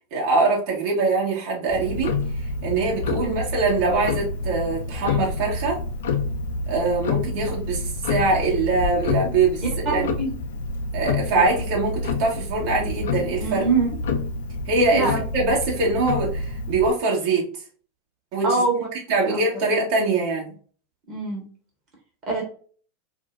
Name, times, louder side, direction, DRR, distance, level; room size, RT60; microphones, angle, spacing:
voice 1, 0.1-5.8 6.7-10.1 10.9-13.6 14.7-17.5 18.3-18.6 19.1-20.5, right 3 dB, 55° right, -3 dB, 1.5 m, -23 dB
Tick-tock, 1.7-16.9, left 3 dB, 70° left, 0.5 m, -28 dB
voice 2, 9.8-10.3 13.4-13.9 14.9-15.2 18.4-18.9 19.2-19.4 21.1-21.4 22.3-22.4, right 3 dB, 35° right, -1 dB, 1.4 m, -24 dB
4.8 x 2.1 x 2.5 m, 0.44 s
hypercardioid pair, 90°, 0 cm